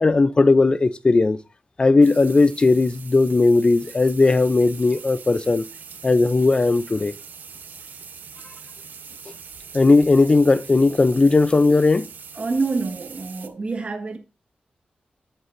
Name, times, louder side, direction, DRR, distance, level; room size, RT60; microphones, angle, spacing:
voice 1, 0.0-1.4 1.8-5.6 6.0-7.1 9.7-12.1, left 3 dB, 30° left, 0.5 m, -17 dB
sound 1, 2.0-13.5, right 6 dB, 75° right, 1.0 m, -42 dB
voice 2, 12.3-14.2, right 3 dB, 40° right, 1.6 m, -26 dB
10.0 x 8.0 x 2.6 m
wide cardioid pair, 110°, 3 cm